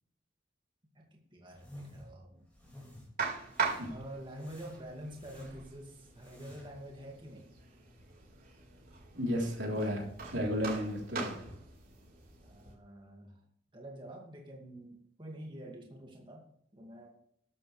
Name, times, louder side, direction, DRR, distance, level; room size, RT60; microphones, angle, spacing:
voice 1, 0.9-2.5 3.4-3.5 3.9-7.5 12.4-13.4 13.7-16.5 16.7-17.1, right 1 dB, 25° right, -1 dB, 2.2 m, -47 dB
sound 1, 1.5-2.1 2.5-3.1 3.5-4.0 4.4-5.7 6.1-6.8, left 1 dB, 10° left, 4.9 m, -52 dB
sound 2, 3.2-12.7, right 5 dB, 50° right, 4.5 m, -42 dB
voice 2, 3.6-3.9 9.1-10.1 10.3-11.4, equal, 80° right, -1 dB, 3.6 m, -33 dB
13.0 x 11.5 x 3.3 m, 0.69 s
head